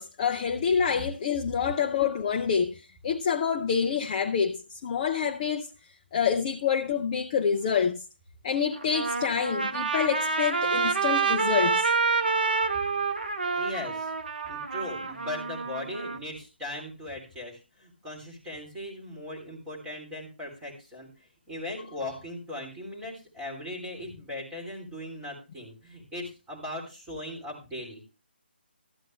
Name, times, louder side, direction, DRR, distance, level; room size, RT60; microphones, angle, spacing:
voice 1, 0.0-5.7 6.1-8.0 8.4-11.9 12.5-12.6, left 7 dB, 25° left, 0.6 m, -27 dB
Trumpet, 8.7-16.2, right 4 dB, 60° right, 1.1 m, -28 dB
voice 2, 13.6-14.1 14.5-21.1 21.5-28.0, left 1 dB, 10° right, 3.3 m, -38 dB
13.0 x 9.1 x 3.3 m
figure-of-eight pair, 145°, 6 cm